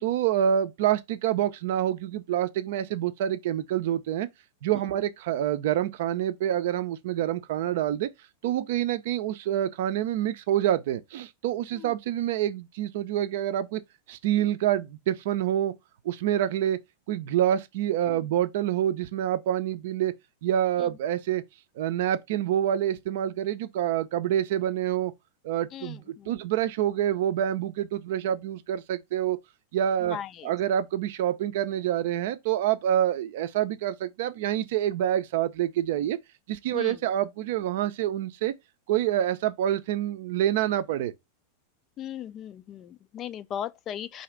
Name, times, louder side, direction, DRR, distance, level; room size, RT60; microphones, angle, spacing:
voice 1, 0.0-4.3 4.6-8.1 8.4-13.8 14.1-15.7 16.0-16.8 17.1-21.4 21.8-25.1 25.4-29.4 29.7-30.2 30.4-36.2 36.5-38.5 38.9-41.1, right 11 dB, 55° right, 0.5 m, -27 dB
voice 2, 25.7-26.3 30.0-30.5 36.7-37.0 42.0-44.2, left 10 dB, 30° left, 0.4 m, -38 dB
3.9 x 2.8 x 4.5 m
figure-of-eight pair, 90°, 0 cm